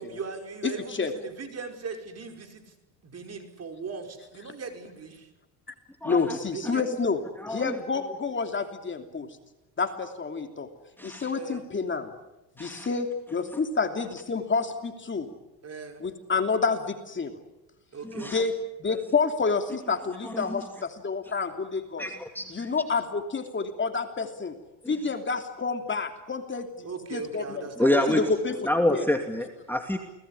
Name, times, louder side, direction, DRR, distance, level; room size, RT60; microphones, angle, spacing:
voice 1, 0.0-2.7 3.0-5.3 6.5-6.8 11.3-11.6 15.6-16.0 17.9-18.4 26.8-28.2, right 5 dB, 35° right, 5 dB, 5.3 m, -38 dB
voice 2, 0.6-1.1 6.0-7.2 7.5-9.3 9.8-10.7 11.0-12.1 12.6-15.3 16.0-17.3 18.3-22.1 22.5-24.5 24.9-27.7 28.1-29.1, left 4 dB, 25° left, 6 dB, 3.1 m, -29 dB
voice 3, 6.0-6.4 7.4-7.7 11.0-11.3 12.6-12.9 18.0-18.4 18.9-19.0 20.2-20.6 22.0-22.7 24.8-24.9 27.8-28.2 28.7-30.0, left 1 dB, 5° left, 4 dB, 2.6 m, -27 dB
29.5 x 20.0 x 9.9 m, 0.96 s
cardioid pair, 105°, 43 cm